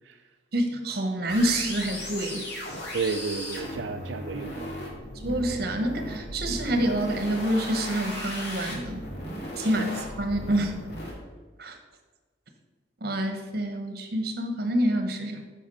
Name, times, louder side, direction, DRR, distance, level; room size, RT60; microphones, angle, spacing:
voice 1, 0.5-2.4 5.2-9.0 9.6-10.7 11.6-11.8 13.0-15.4, right 1 dB, 60° right, 5 dB, 1.2 m, -27 dB
sound 1, 1.3-11.1, left 1 dB, 60° left, 2.4 m, -36 dB
voice 2, 2.9-4.8 9.6-9.8, right 5 dB, 85° right, 5 dB, 0.4 m, -32 dB
8.7 x 6.1 x 5.5 m, 1.3 s
head